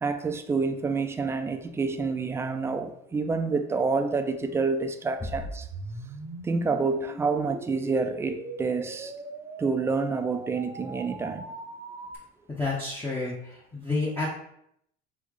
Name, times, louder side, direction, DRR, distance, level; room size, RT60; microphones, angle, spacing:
voice 1, 0.0-5.7 6.4-9.1 9.6-11.4, right 4 dB, 15° right, 0.3 m, -28 dB
sound 1, 5.3-12.2, right 2 dB, 30° right, 0.7 m, -40 dB
voice 2, 12.5-14.3, left 3 dB, 10° left, 0.7 m, -30 dB
3.6 x 3.2 x 3.6 m
cardioid pair, 125°, 20 cm